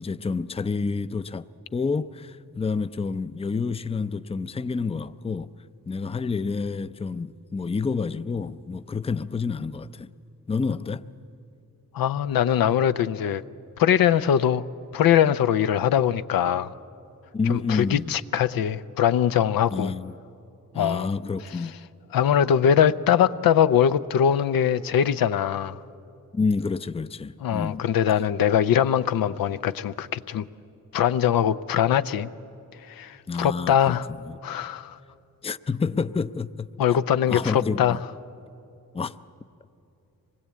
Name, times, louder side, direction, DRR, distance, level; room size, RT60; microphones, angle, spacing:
voice 1, 0.0-5.5 5.9-10.1 10.5-11.1 17.3-18.2 19.7-20.1 20.7-21.7 26.3-27.9 33.3-34.0 34.3-34.4 35.4-36.7 37.3-38.0 38.9-39.2, left 4 dB, 15° left, 0.5 m, -28 dB
voice 2, 11.9-13.4 13.8-14.6 14.9-16.7 17.5-19.9 20.8-21.1 22.1-25.8 27.4-30.5 30.9-32.3 32.9-34.1 34.4-35.0 36.8-38.0, left 9 dB, 85° left, 0.6 m, -22 dB
25.0 x 20.5 x 8.3 m
cardioid pair, 85°, 34 cm